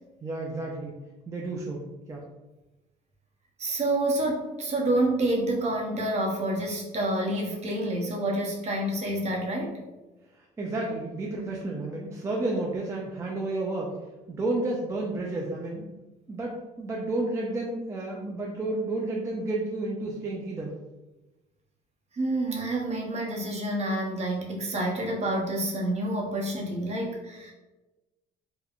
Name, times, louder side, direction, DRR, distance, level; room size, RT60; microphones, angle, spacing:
voice 1, 0.2-1.0 1.3-2.2 10.4-13.9 14.3-15.9 16.3-20.7, right 2 dB, 20° right, -2 dB, 0.3 m, -31 dB
voice 2, 3.6-9.8 22.1-27.5, right 1 dB, 40° right, -1 dB, 0.7 m, -28 dB
3.5 x 2.1 x 2.3 m, 1.1 s
cardioid pair, 110°, 17 cm